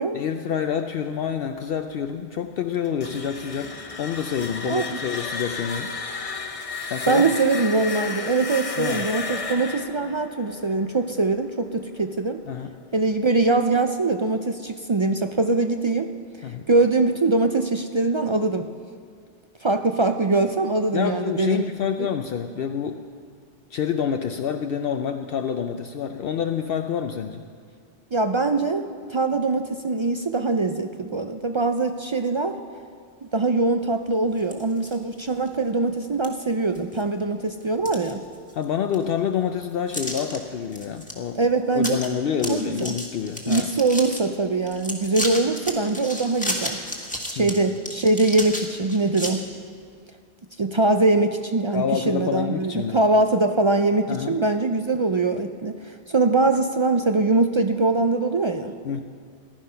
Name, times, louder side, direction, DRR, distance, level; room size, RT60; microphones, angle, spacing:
voice 1, 0.1-5.9 6.9-7.2 8.8-9.1 12.5-12.7 16.4-16.6 20.9-23.0 23.7-27.4 38.5-41.4 41.7-43.7 47.4-47.6 51.7-53.0 54.1-54.4 58.8-59.0, left 8 dB, 70° left, 6 dB, 0.7 m, -27 dB
sound 1, 2.8-11.7, left 4 dB, 35° left, 0.9 m, -33 dB
voice 2, 4.7-5.0 7.1-12.4 12.9-16.1 16.7-18.7 19.6-21.7 22.0-22.1 28.1-32.6 33.3-38.2 41.3-42.0 42.4-43.0 43.5-46.8 47.3-49.4 50.6-58.7, right 3 dB, 45° right, 7 dB, 0.4 m, -22 dB
sound 2, 34.4-35.0 35.4-35.5 36.2-36.3 36.7-37.2 37.6-38.6 38.9-39.0 39.9-40.4 40.7-41.1 41.4-41.5 41.8-42.1 42.3-44.2 44.7-49.3, left 1 dB, 5° left, 1.6 m, -32 dB
15.0 x 11.5 x 5.6 m, 2.1 s
omnidirectional pair, 1.1 m